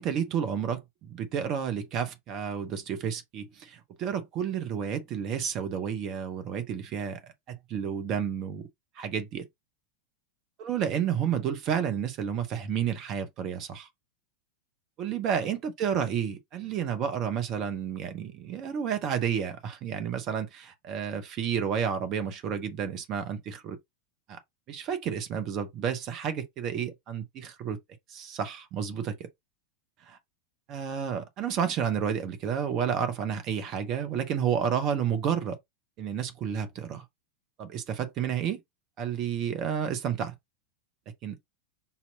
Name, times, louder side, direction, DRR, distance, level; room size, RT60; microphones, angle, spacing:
voice 1, 0.0-7.2 7.5-8.7 9.0-9.5 10.6-13.9 15.0-23.8 24.3-24.4 24.7-27.8 28.1-29.2 30.1-30.2 30.7-35.6 36.0-37.0 37.6-38.6 39.0-40.3 41.2-41.5, right 8 dB, 35° right, 1.0 m, -31 dB
5.6 x 2.9 x 2.8 m
figure-of-eight pair, 90°, 0 cm